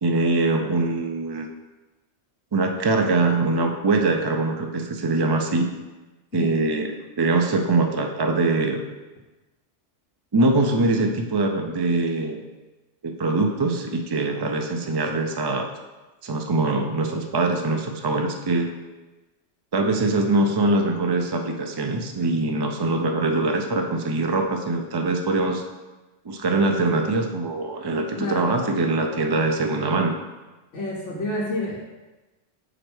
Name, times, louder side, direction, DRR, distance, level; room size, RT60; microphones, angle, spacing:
voice 1, 0.0-1.5 2.5-5.7 6.3-8.8 10.3-12.4 13.0-15.7 16.2-18.7 19.7-25.6 26.2-30.1, right 2 dB, 35° right, 3 dB, 0.4 m, -23 dB
voice 2, 28.2-28.6 30.7-31.8, left 1 dB, 80° left, -6 dB, 1.3 m, -29 dB
5.0 x 4.4 x 6.1 m, 1.1 s
omnidirectional pair, 1.2 m